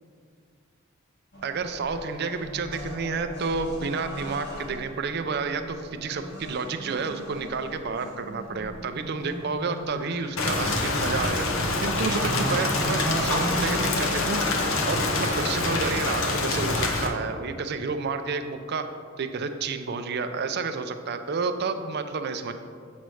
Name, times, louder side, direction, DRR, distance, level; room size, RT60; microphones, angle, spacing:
sound 1, 1.3-15.0, equal, 55° left, 1.4 m, -36 dB
voice 1, 1.4-11.5 11.8-14.6 14.9-18.9 19.2-22.5, right 4 dB, 50° right, 8 dB, 0.4 m, -30 dB
Rain, 10.4-17.1, left 2 dB, 80° left, 0.8 m, -26 dB
8.0 x 3.1 x 6.2 m, 2.1 s
head